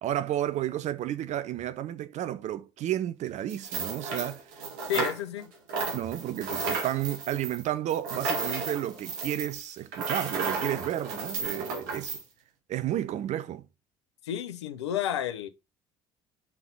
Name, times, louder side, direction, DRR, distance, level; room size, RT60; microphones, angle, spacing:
voice 1, 0.0-4.6 4.9-5.1 5.9-12.2 12.7-13.6, right 12 dB, 55° right, 0.8 m, -32 dB
sound 1, 3.5-5.4 5.7-12.2, right 4 dB, 70° right, 2.0 m, -33 dB
voice 2, 4.9-5.4 14.2-15.5, left 10 dB, 85° left, 0.7 m, -31 dB
5.7 x 3.9 x 5.3 m
hypercardioid pair, 55°, 14 cm